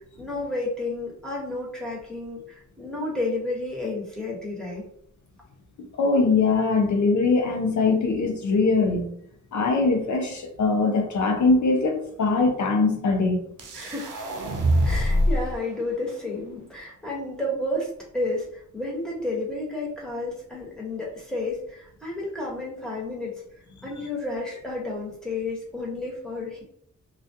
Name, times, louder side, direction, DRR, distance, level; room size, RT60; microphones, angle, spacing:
voice 1, 0.2-4.8 13.7-14.2 14.8-23.4 23.8-26.6, left 2 dB, ahead, -4 dB, 1.1 m, -31 dB
voice 2, 6.0-9.1 9.5-13.4, left 3 dB, 65° left, 2 dB, 0.5 m, -22 dB
sound 1, 13.6-15.6, equal, 75° right, 0.6 m, -24 dB
2.3 x 2.1 x 2.7 m, 0.67 s
cardioid pair, 60°, 31 cm